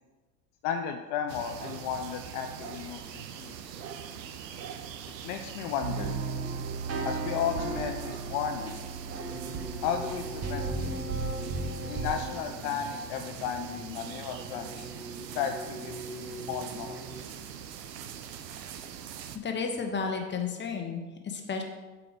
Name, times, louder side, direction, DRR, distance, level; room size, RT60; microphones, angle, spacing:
voice 1, 0.6-3.8 5.2-6.2 7.1-8.8 9.8-11.1 11.9-14.9 15.3-17.2, left 7 dB, 55° left, 5 dB, 0.7 m, -34 dB
sound 1, 1.3-19.4, right 8 dB, 85° right, 0.8 m, -43 dB
sound 2, 5.8-12.4, right 3 dB, 30° right, 1.3 m, -35 dB
sound 3, 9.3-17.2, right 2 dB, 5° right, 0.4 m, -44 dB
voice 2, 19.3-21.6, left 5 dB, 20° left, 3 dB, 1.3 m, -32 dB
7.7 x 4.9 x 5.1 m, 1.3 s
hypercardioid pair, 85°, 49 cm